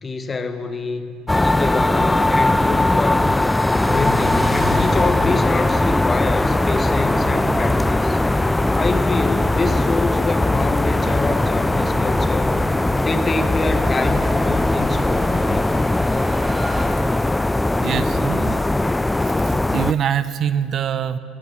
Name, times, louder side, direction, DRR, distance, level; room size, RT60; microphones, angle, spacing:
voice 1, 0.0-3.3 3.9-8.2 8.7-12.6 13.0-15.6, left 4 dB, 30° left, 10 dB, 1.2 m, -26 dB
sound 1, 1.3-19.9, left 2 dB, 10° left, 0.3 m, -19 dB
sound 2, 3.7-16.9, equal, 5° right, 4.6 m, -33 dB
sound 3, 5.3-18.8, left 2 dB, 55° left, 4.1 m, -42 dB
voice 2, 17.8-18.6 19.2-21.2, right 8 dB, 50° right, 13 dB, 0.7 m, -24 dB
16.0 x 14.0 x 6.5 m, 2.3 s
hypercardioid pair, 65°, 0 cm